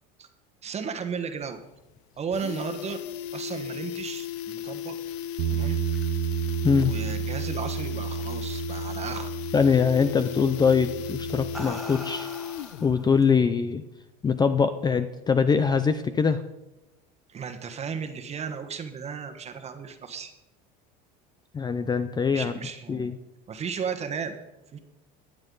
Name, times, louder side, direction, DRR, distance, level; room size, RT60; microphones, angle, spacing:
voice 1, 0.6-1.6 2.2-3.0 3.3-4.9 5.5-5.8 6.8-9.3 17.3-20.3 22.3-23.1 23.5-24.3 24.7-24.8, right 6 dB, 30° right, 8 dB, 1.4 m, -34 dB
sound 1, 1.4-1.5 1.8-1.9 2.2-13.0 13.3-13.4, left 10 dB, 80° left, 0.6 m, -35 dB
sound 2, 5.4-8.3 8.7-9.1 10.4-10.6 11.2-13.3, equal, ahead, 1.6 m, -43 dB
Bass guitar, 5.4-11.6, right 11 dB, 65° right, 0.7 m, -32 dB
voice 2, 9.5-12.3 12.8-13.8 14.2-16.4 21.5-22.5 22.9-23.1, left 5 dB, 20° left, 10 dB, 0.6 m, -23 dB
21.5 x 7.8 x 4.0 m, 1.0 s
supercardioid pair, 115°, 21 cm